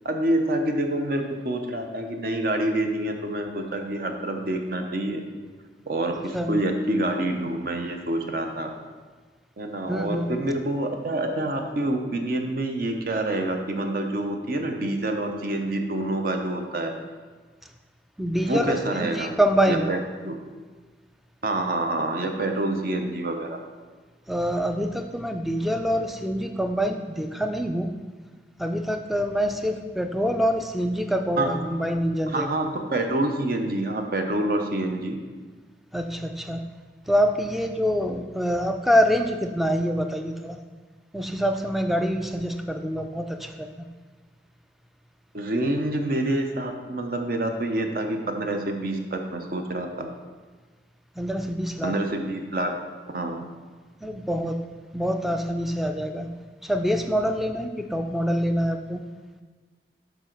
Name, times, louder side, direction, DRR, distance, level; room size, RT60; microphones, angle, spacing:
voice 1, 0.0-5.2 5.9-8.7 9.6-16.9 18.5-19.3 19.7-20.0 20.2-20.4 21.4-23.5 31.4-31.7 32.3-35.2 45.3-50.1 51.8-52.7 53.1-53.4, right 1 dB, 55° right, 4 dB, 0.7 m, -27 dB
voice 2, 9.9-10.3 18.2-19.9 24.3-27.9 28.6-32.5 35.9-36.6 37.1-40.6 41.1-43.8 51.2-51.9 54.0-54.6 54.9-56.3 56.6-59.0, equal, ahead, 6 dB, 0.3 m, -25 dB
7.3 x 3.9 x 4.5 m, 1.4 s
head